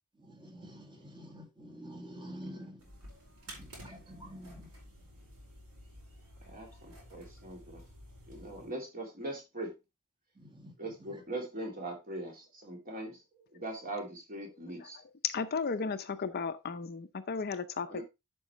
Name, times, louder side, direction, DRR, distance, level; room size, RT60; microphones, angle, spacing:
voice 1, 0.2-2.8 3.5-4.7 10.4-10.7 11.0-11.1, equal, 20° right, 1.9 m, -48 dB
sound 1, 2.8-8.7, equal, 75° right, 4.5 m, -52 dB
voice 2, 6.4-7.8 8.3-9.7 10.8-13.2 13.5-15.0 17.9-18.0, right 1 dB, 40° right, 2.9 m, -41 dB
voice 3, 15.2-18.0, left 5 dB, 45° left, 0.6 m, -34 dB
11.0 x 5.4 x 3.1 m
head